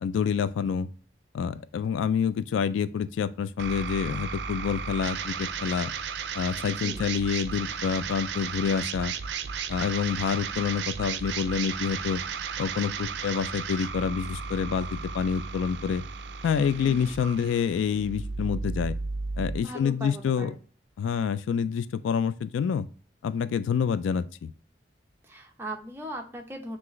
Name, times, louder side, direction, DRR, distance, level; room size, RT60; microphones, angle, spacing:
voice 1, 0.0-0.9 1.3-5.9 6.3-9.1 9.7-12.2 12.6-16.0 16.4-19.0 19.4-20.5 21.0-22.9 23.2-24.5, left 7 dB, 85° left, 0.3 m, -27 dB
sound 1, 3.6-19.6, right 5 dB, 65° right, 0.4 m, -34 dB
voice 2, 16.8-17.1 19.6-20.6 25.2-26.8, right 1 dB, 10° right, 0.7 m, -39 dB
6.0 x 2.5 x 3.0 m
head